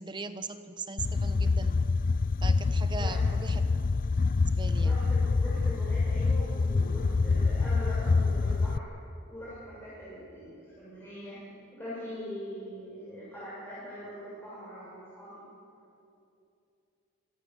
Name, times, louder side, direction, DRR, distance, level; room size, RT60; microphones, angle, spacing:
voice 1, 0.0-1.8 2.4-3.7 4.5-5.0, right 4 dB, 20° right, 10 dB, 1.0 m, -39 dB
sound 1, 1.0-8.8, left 4 dB, 40° left, 0.4 m, -26 dB
voice 2, 4.8-8.9 9.3-11.4 11.7-15.4, equal, 10° left, -9 dB, 7.0 m, -42 dB
26.0 x 17.5 x 8.0 m, 2.7 s
head